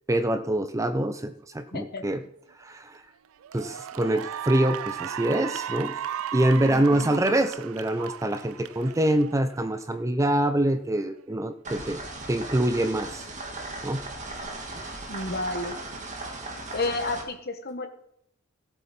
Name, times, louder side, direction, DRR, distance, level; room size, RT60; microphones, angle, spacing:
voice 1, 0.1-2.2 2.6-3.0 3.5-5.9 6.3-12.0 12.3-13.3 13.8-14.0 14.8-14.9, right 1 dB, 15° right, 10 dB, 0.5 m, -25 dB
voice 2, 1.7-2.0 6.6-7.1 15.1-15.8 16.7-17.9, left 2 dB, 50° left, 6 dB, 1.4 m, -31 dB
Cheering / Applause, 2.7-3.0 3.4-9.9, right 9 dB, 90° right, 0.4 m, -36 dB
sound 1, 11.6-17.2, right 2 dB, 35° right, 1.8 m, -37 dB
16.5 x 8.2 x 4.3 m, 0.73 s
head